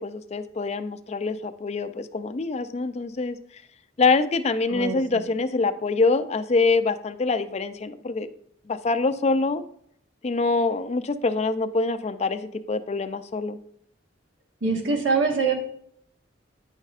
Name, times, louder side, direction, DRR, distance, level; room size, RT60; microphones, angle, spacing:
voice 1, 0.0-3.4 4.0-8.3 8.7-9.6 10.2-13.6, left 3 dB, 35° left, 11 dB, 0.4 m, -25 dB
voice 2, 4.7-5.2 14.6-15.5, right 4 dB, 85° right, 1 dB, 1.5 m, -24 dB
9.5 x 5.4 x 2.5 m, 0.64 s
head